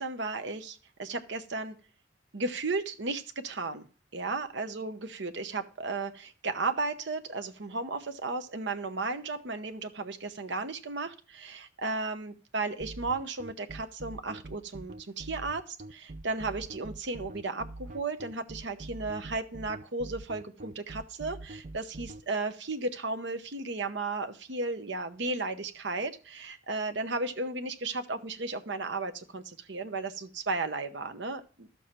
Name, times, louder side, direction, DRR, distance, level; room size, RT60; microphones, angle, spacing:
voice 1, 0.0-1.7 2.3-3.8 4.1-31.7, right 3 dB, 65° right, 8 dB, 0.9 m, -34 dB
sound 1, 12.8-22.2, right 2 dB, 40° right, 0.6 m, -43 dB
12.0 x 7.0 x 4.4 m, 0.37 s
head